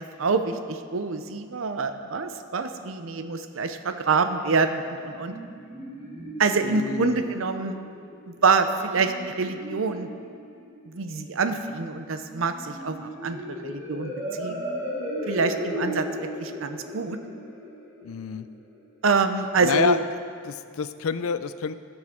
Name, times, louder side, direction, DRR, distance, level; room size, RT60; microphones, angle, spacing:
voice 1, 0.2-5.3 6.4-7.8 8.3-10.1 10.9-14.6 15.3-17.2 19.0-20.0, right 4 dB, 70° right, 8 dB, 0.6 m, -26 dB
sound 1, 5.1-18.8, equal, 15° right, 2.2 m, -37 dB
voice 2, 6.6-7.2 18.0-18.5 19.6-20.0 20.4-21.7, left 6 dB, 80° left, 12 dB, 0.4 m, -28 dB
16.0 x 6.2 x 3.6 m, 2.3 s
head